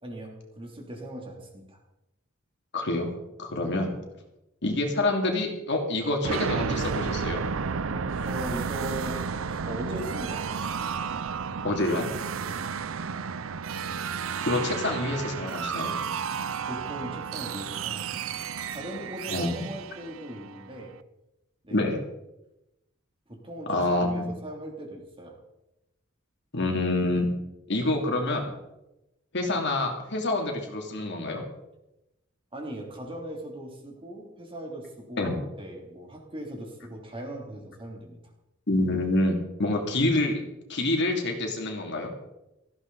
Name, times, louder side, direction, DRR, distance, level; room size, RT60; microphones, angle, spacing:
voice 1, 0.0-1.8 8.3-10.7 12.4-12.6 16.6-18.3 18.7-21.0 21.6-21.8 23.3-25.4 32.5-38.2, right 1 dB, 25° right, 1 dB, 3.1 m, -39 dB
voice 2, 2.7-3.1 3.4-3.9 4.6-7.4 11.6-12.1 14.4-15.9 19.3-19.5 21.7-22.0 23.7-24.2 26.5-27.3 27.7-28.5 29.3-31.4 35.2-35.3 38.7-40.4 40.7-42.1, left 2 dB, 60° left, 2 dB, 2.9 m, -27 dB
sound 1, 6.2-20.9, right 6 dB, 80° right, 0.6 m, -32 dB
17.0 x 15.0 x 4.1 m, 0.93 s
head